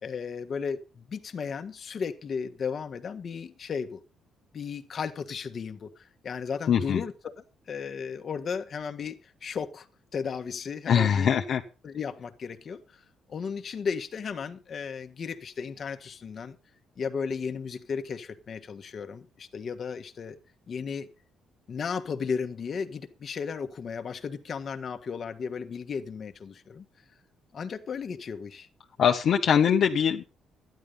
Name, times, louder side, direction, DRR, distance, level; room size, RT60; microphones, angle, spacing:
voice 1, 0.0-4.0 4.5-7.1 7.7-9.9 10.1-11.3 11.8-13.0 13.3-16.6 17.0-20.4 20.7-21.1 21.7-26.8 27.5-28.7, left 6 dB, 50° left, 1.4 m, -35 dB
voice 2, 6.7-7.0 10.9-11.6 29.0-30.2, left 8 dB, 65° left, 1.1 m, -22 dB
12.5 x 10.5 x 5.3 m
cardioid pair, 90°, 0 cm